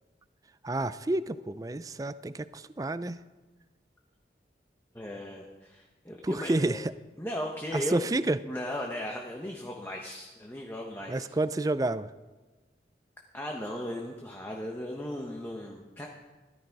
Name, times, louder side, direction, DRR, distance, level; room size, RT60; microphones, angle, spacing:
voice 1, 0.6-3.2 6.2-6.9 7.7-8.4 11.1-12.1, right 2 dB, 20° right, 14 dB, 0.4 m, -29 dB
voice 2, 4.9-6.8 7.2-8.1 8.5-11.2 13.3-16.1, left 1 dB, 10° left, 0 dB, 1.0 m, -37 dB
14.0 x 12.5 x 4.7 m, 1.2 s
head